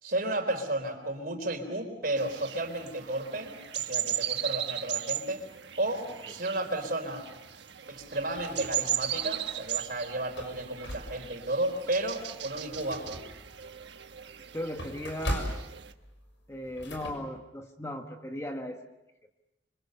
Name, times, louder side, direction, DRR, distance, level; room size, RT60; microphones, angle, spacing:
voice 1, 0.0-5.4 5.8-7.3 7.9-13.2, right 1 dB, 50° right, 4 dB, 4.1 m, -33 dB
sound 1, 2.2-15.9, right 11 dB, 70° right, 1.3 m, -37 dB
sound 2, 8.0-9.3 9.7-9.8 10.2-11.5 11.9-12.1 12.4-17.1, equal, 80° left, 6.5 m, -39 dB
voice 2, 14.5-15.5 16.5-18.9, left 1 dB, 15° left, 4 dB, 1.2 m, -37 dB
27.0 x 26.0 x 6.7 m, 0.92 s
head